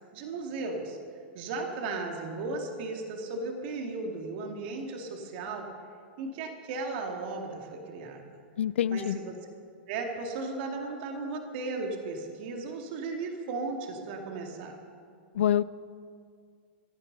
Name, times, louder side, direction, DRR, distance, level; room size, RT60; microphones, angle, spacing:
voice 1, 0.1-1.0 1.3-5.7 6.2-8.2 8.9-9.4 9.9-14.8, right 3 dB, 60° right, 2 dB, 2.2 m, -35 dB
voice 2, 8.6-9.2 15.3-15.6, left 10 dB, 85° left, 18 dB, 0.4 m, -25 dB
25.0 x 11.0 x 4.0 m, 2.3 s
hypercardioid pair, 120°, 6 cm